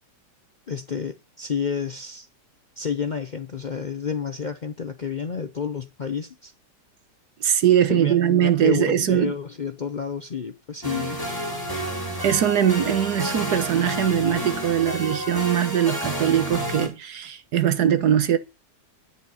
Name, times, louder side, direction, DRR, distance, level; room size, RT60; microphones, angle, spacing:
voice 1, 0.7-2.3 2.8-6.5 7.9-11.2, left 6 dB, 60° left, 0.4 m, -30 dB
voice 2, 7.4-9.3 12.2-18.4, right 10 dB, 65° right, 1.5 m, -21 dB
sound 1, 10.8-16.9, right 1 dB, 10° left, 4.4 m, -30 dB
10.0 x 9.5 x 5.5 m
omnidirectional pair, 1.9 m